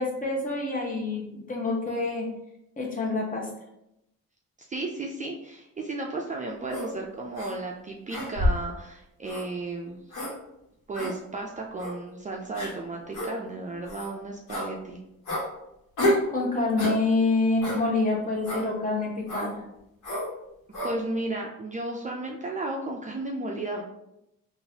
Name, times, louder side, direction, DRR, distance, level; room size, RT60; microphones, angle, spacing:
voice 1, 0.0-2.3 2.8-3.5 16.0-19.6, left 3 dB, 25° left, -1 dB, 1.0 m, -27 dB
voice 2, 4.7-10.0 10.9-15.0 20.8-23.8, right 2 dB, 25° right, -1 dB, 0.4 m, -34 dB
sound 1, 6.7-6.9 7.3-7.5 8.1-8.7 9.3-9.4 10.1-10.3 10.9-11.1 11.8-11.9 12.5-12.7 13.1-13.3 13.8-14.1 14.5-14.7 15.3-15.4 16.0-16.3 16.8-17.0 17.6-17.8 18.4-18.6 19.3-19.5 20.0-20.3 20.7-20.9, equal, 85° left, 1.3 m, -28 dB
3.8 x 2.5 x 2.8 m, 0.85 s
cardioid pair, 90°, 30 cm